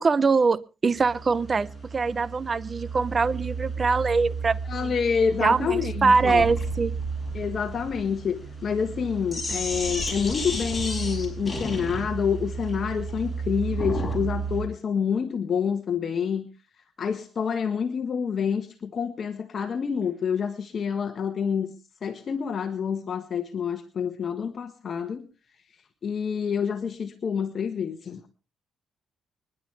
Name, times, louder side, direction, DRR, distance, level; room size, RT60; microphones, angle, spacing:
voice 1, 0.0-4.9 5.4-6.9, right 4 dB, 35° right, 18 dB, 0.6 m, -23 dB
sound 1, 0.9-14.7, right 5 dB, 5° right, 7.1 m, -34 dB
voice 2, 4.7-6.4 7.3-16.5 17.0-21.7 22.0-25.2 26.0-28.3, left 6 dB, 50° left, 7 dB, 1.4 m, -28 dB
Sink (filling or washing), 6.2-14.3, left 3 dB, 25° left, 6.0 m, -34 dB
25.0 x 11.0 x 3.4 m, 0.32 s
cardioid pair, 90°, 0 cm